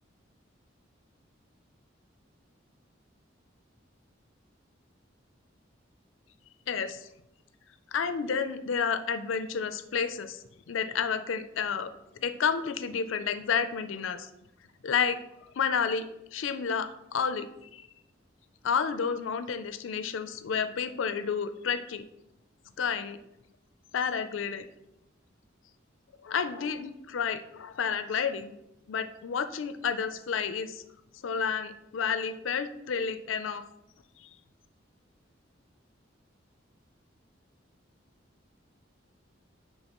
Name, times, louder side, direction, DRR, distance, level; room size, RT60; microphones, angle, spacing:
voice 1, 6.7-7.1 7.9-11.9 12.2-14.3 14.8-15.2 15.6-16.1 16.3-17.5 17.7-17.9 18.6-22.1 22.8-23.2 23.9-24.7 26.2-28.5 28.9-30.8 31.2-33.6 34.2-34.3, left 6 dB, 85° left, 11 dB, 0.4 m, -30 dB
9.8 x 3.5 x 3.0 m, 0.87 s
head